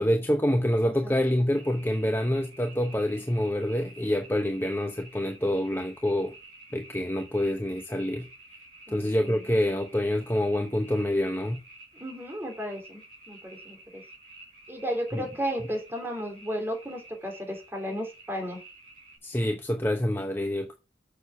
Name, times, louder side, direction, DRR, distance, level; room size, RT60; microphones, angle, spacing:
voice 1, 0.0-6.3 6.7-8.3 8.9-11.6 15.1-15.2 19.2-20.7, left 1 dB, 15° left, 0.8 m, -27 dB
voice 2, 0.8-1.1 8.9-9.6 12.0-14.0 14.7-18.6, equal, 15° right, 3.0 m, -34 dB
sound 1, 1.5-19.2, right 2 dB, 50° right, 5.3 m, -51 dB
7.0 x 6.4 x 5.8 m
head